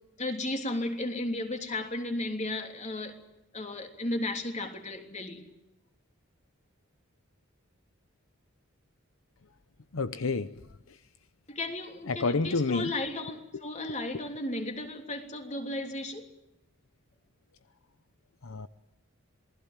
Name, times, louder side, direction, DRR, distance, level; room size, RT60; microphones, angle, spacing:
voice 1, 0.2-3.2 3.5-5.5 11.5-16.2, left 2 dB, 35° left, 3.2 m, -34 dB
voice 2, 9.9-10.5 12.1-12.9 18.4-18.7, left 3 dB, 75° left, 0.8 m, -29 dB
27.0 x 20.0 x 7.5 m
head